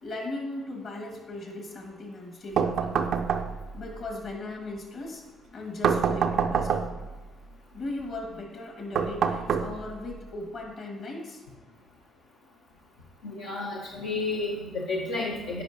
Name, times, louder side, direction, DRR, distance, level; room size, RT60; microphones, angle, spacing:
voice 1, 0.0-3.2 3.7-5.2 5.5-6.9 7.7-11.4, left 2 dB, 60° left, 1 dB, 1.6 m, -38 dB
sound 1, 2.6-3.8 5.8-7.1 8.9-10.1, right 6 dB, 65° right, 0.4 m, -26 dB
voice 2, 13.2-15.6, left 3 dB, 90° left, -4 dB, 0.7 m, -31 dB
8.8 x 4.8 x 2.6 m, 1.2 s
supercardioid pair, 60°, 0 cm